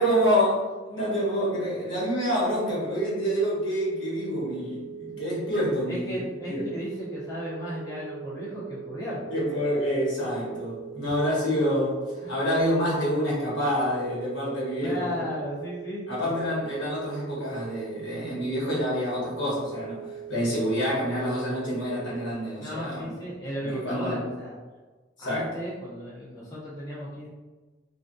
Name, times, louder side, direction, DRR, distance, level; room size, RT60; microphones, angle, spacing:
voice 1, 0.0-6.2 6.5-6.6 9.3-15.2 16.1-23.1 23.6-24.2 25.2-25.5, equal, 70° left, -7 dB, 1.3 m, -27 dB
sound 1, 2.7-22.3, right 8 dB, 45° right, 0.3 m, -41 dB
voice 2, 5.8-9.3 12.2-12.3 14.8-16.5 22.6-24.5 25.2-27.3, equal, 20° left, -9 dB, 0.7 m, -35 dB
3.2 x 2.4 x 2.6 m, 1.3 s
head